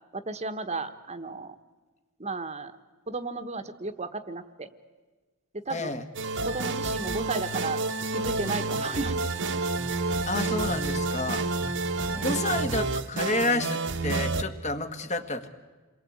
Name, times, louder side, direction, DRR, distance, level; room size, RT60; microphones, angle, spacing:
voice 1, 0.1-1.5 2.2-2.7 3.1-4.7 5.5-6.0 6.4-7.8 8.1-9.3 9.9-10.0 12.1-12.4, right 3 dB, 30° right, 10 dB, 1.2 m, -34 dB
voice 2, 5.7-6.1 10.3-11.5 12.2-15.5, left 2 dB, 30° left, 8 dB, 1.8 m, -30 dB
sound 1, 6.2-14.4, right 3 dB, 55° right, 1.2 m, -29 dB
28.5 x 22.0 x 8.7 m, 1.3 s
head